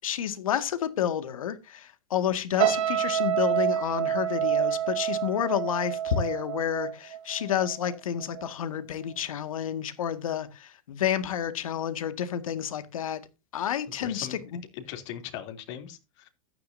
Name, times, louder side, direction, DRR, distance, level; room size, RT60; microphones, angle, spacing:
voice 1, 0.0-13.2 13.5-14.6, left 9 dB, 85° left, 1.9 m, -30 dB
sound 1, 2.6-7.9 8.2-8.5, right 10 dB, 70° right, 3.5 m, -28 dB
voice 2, 14.0-14.4 14.8-16.3, left 10 dB, 60° left, 3.0 m, -39 dB
14.5 x 10.0 x 2.7 m
hypercardioid pair, 125°, 17 cm